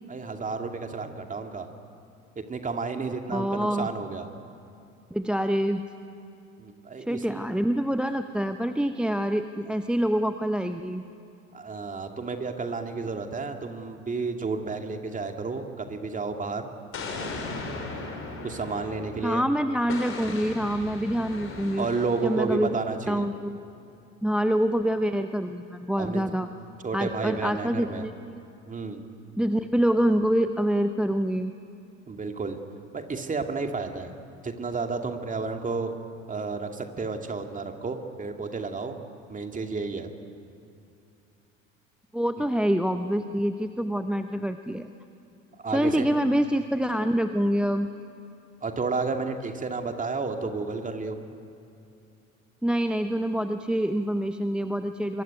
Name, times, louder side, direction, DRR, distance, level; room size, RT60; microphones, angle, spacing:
voice 1, 0.1-1.7 2.4-4.3 6.6-7.4 11.5-16.7 18.4-19.4 21.8-23.3 26.0-26.2 26.8-28.1 28.7-29.0 32.1-32.6 32.9-34.1 34.4-35.9 36.3-39.0 39.3-40.1 45.6-46.1 48.6-51.2, right 4 dB, 20° right, 5 dB, 2.5 m, -31 dB
voice 2, 3.3-3.9 5.1-5.8 7.1-11.0 19.2-21.9 22.2-22.8 23.1-23.6 24.2-26.5 26.9-28.1 29.4-31.5 42.1-44.9 45.7-47.9 52.6-55.2, equal, ahead, 9 dB, 0.8 m, -26 dB
Explosion, 16.9-19.4 19.9-22.4, left 3 dB, 35° left, 5.9 m, -37 dB
25.5 x 22.5 x 9.5 m, 2.6 s
figure-of-eight pair, 70°, 39 cm